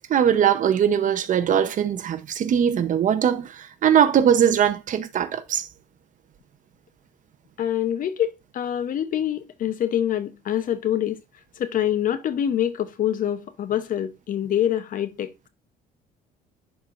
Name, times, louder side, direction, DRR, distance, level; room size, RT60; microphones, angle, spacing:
voice 1, 0.1-5.7, right 9 dB, 50° right, 0.8 m, -21 dB
voice 2, 7.6-11.2 11.6-15.3, left 10 dB, 55° left, 0.8 m, -25 dB
11.0 x 4.5 x 2.5 m
cardioid pair, 110°, 17 cm